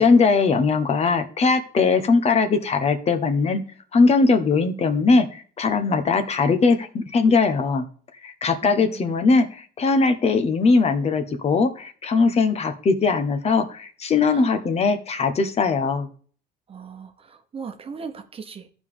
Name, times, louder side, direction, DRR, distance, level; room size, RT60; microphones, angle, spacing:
voice 1, 0.0-3.6 3.9-7.8 8.2-16.1, left 4 dB, 40° left, 9 dB, 1.0 m, -20 dB
voice 2, 8.6-9.2 14.3-14.5 16.7-18.7, right 6 dB, 35° right, 7 dB, 1.1 m, -38 dB
14.5 x 5.1 x 3.5 m, 0.43 s
cardioid pair, 110°, 17 cm